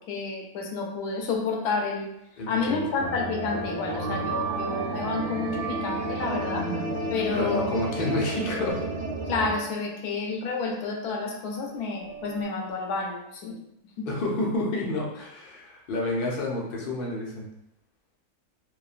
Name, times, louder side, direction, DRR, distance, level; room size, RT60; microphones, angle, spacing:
voice 1, 0.1-2.1 2.5-6.7 7.1-7.7 9.3-13.6 14.0-14.1, left 4 dB, 85° left, 0 dB, 1.1 m, -30 dB
voice 2, 2.4-2.8 7.3-8.9 14.1-17.5, left 2 dB, 55° left, -3 dB, 0.6 m, -29 dB
sound 1, 2.8-4.4 5.7-7.2 8.1-8.7, right 2 dB, 80° right, 1.2 m, -40 dB
sound 2, 2.9-10.5 10.7-10.8 12.0-12.4, right 2 dB, 60° right, 1.0 m, -32 dB
3.1 x 2.3 x 2.4 m, 0.84 s
omnidirectional pair, 1.6 m